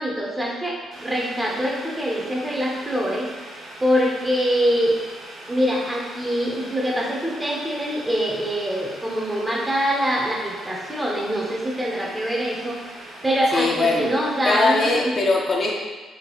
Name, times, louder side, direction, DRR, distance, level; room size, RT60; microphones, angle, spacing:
voice 1, 0.0-4.9 5.5-15.1, equal, 15° right, -3 dB, 0.9 m, -24 dB
Boiling, 0.9-14.9, right 1 dB, 70° right, 0.8 m, -41 dB
voice 2, 13.5-14.1 14.4-15.7, left 3 dB, 45° left, -2 dB, 0.6 m, -20 dB
3.7 x 3.3 x 3.1 m, 1.3 s
cardioid pair, 90°, 0 cm